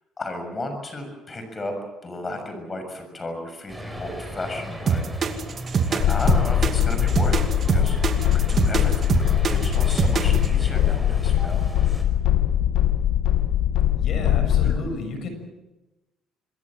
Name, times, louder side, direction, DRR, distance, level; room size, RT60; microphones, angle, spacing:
voice 1, 0.2-5.1 5.9-11.6 14.6-14.8, left 2 dB, 25° left, 6 dB, 6.7 m, -34 dB
sound 1, 3.7-12.0, equal, ahead, 5.3 m, -36 dB
sound 2, 4.9-10.5, right 6 dB, 40° right, 2.4 m, -23 dB
sound 3, 6.0-14.8, left 11 dB, 80° left, 1.1 m, -21 dB
voice 2, 13.9-15.3, left 3 dB, 55° left, 7 dB, 6.8 m, -31 dB
27.0 x 21.0 x 7.6 m, 1.1 s
cardioid pair, 120°, 0 cm